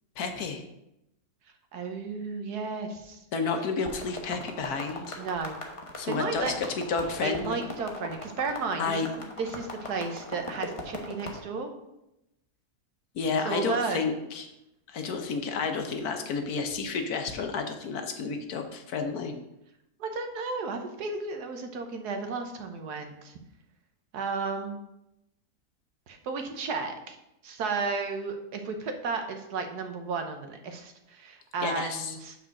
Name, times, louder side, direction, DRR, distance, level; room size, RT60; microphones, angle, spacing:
voice 1, 0.2-0.6 3.3-5.2 6.0-7.6 8.8-9.1 13.1-14.5 14.9-19.3 31.6-32.2, left 4 dB, 75° left, 5 dB, 1.4 m, -31 dB
voice 2, 1.7-3.2 5.2-5.5 6.1-6.5 7.2-9.0 9.4-11.7 13.4-14.0 20.0-23.3 24.1-24.8 26.1-27.2 27.4-32.3, right 4 dB, 85° right, 5 dB, 1.5 m, -33 dB
sound 1, 3.8-11.4, left 2 dB, 25° left, 1.0 m, -39 dB
5.9 x 5.0 x 6.3 m, 0.88 s
omnidirectional pair, 1.6 m